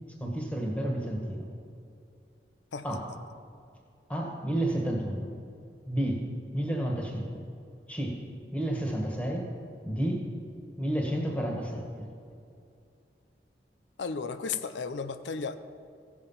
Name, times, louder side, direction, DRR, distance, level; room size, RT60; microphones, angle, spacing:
voice 1, 0.2-1.5 2.8-3.1 4.1-5.3 5.8-6.2 6.5-7.5 7.9-8.2 8.5-9.5 9.8-10.3 10.8-12.1, right 1 dB, 10° left, 0 dB, 1.5 m, -31 dB
voice 2, 14.0-15.6, left 5 dB, 90° left, 10 dB, 0.5 m, -34 dB
15.0 x 7.3 x 5.6 m, 2.5 s
head